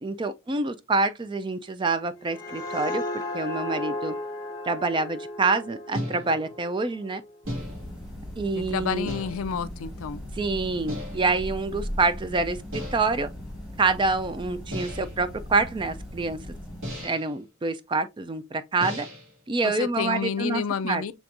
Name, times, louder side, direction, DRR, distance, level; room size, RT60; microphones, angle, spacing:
voice 1, 0.0-4.1 4.7-7.2 8.4-9.1 10.3-13.3 13.8-16.4 17.0-19.1 19.5-21.0, right 3 dB, 20° right, 0.3 m, -27 dB
sound 1, 2.0-7.5, left 2 dB, 20° left, 0.9 m, -35 dB
sound 2, 5.9-6.6 7.5-8.1 9.1-9.6 10.9-11.4 12.7-13.2 14.7-15.3 16.8-17.4 18.8-19.4, equal, 70° right, 2.4 m, -36 dB
sound 3, 7.4-17.0, equal, 5° right, 1.5 m, -38 dB
voice 2, 8.5-10.2 19.6-21.1, left 6 dB, 80° left, 0.4 m, -30 dB
6.2 x 3.4 x 2.5 m
head